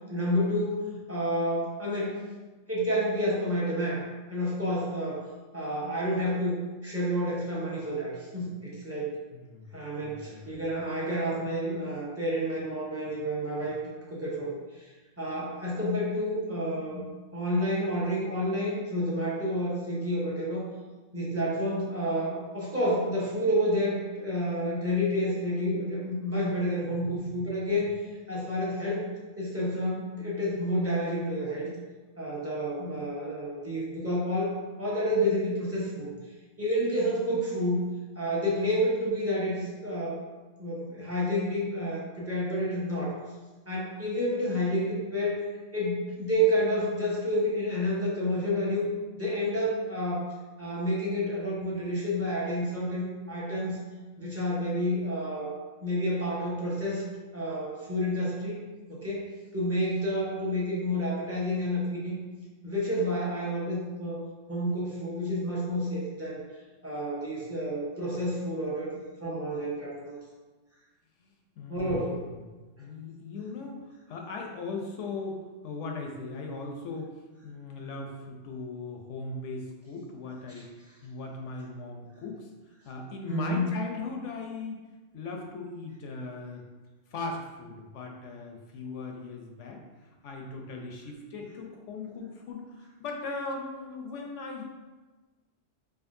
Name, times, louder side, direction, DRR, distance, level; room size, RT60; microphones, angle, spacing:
voice 1, 0.1-2.2 2.7-4.0 4.3-5.2 5.5-9.2 9.7-13.8 14.1-14.9 15.2-17.1 17.3-20.7 21.1-27.9 28.3-29.0 29.4-31.7 32.2-36.1 36.6-37.9 38.1-40.2 40.6-43.2 43.7-45.4 45.7-48.9 49.1-50.3 50.6-53.8 54.2-55.5 55.8-57.0 57.3-58.6 58.9-59.2 59.5-62.2 62.6-64.2 64.5-66.4 66.8-70.2 71.7-72.2 83.3-83.8, equal, 15° right, -6 dB, 0.6 m, -29 dB
voice 2, 9.3-9.7 10.0-10.5 26.9-27.0 27.3-27.4 71.6-72.3 72.8-73.7 74.1-77.1 77.4-80.7 81.0-82.5 82.9-84.8 85.1-86.6 87.1-89.8 90.2-94.6, left 3 dB, 75° left, 1 dB, 0.9 m, -38 dB
5.1 x 2.3 x 2.6 m, 1.2 s
omnidirectional pair, 1.3 m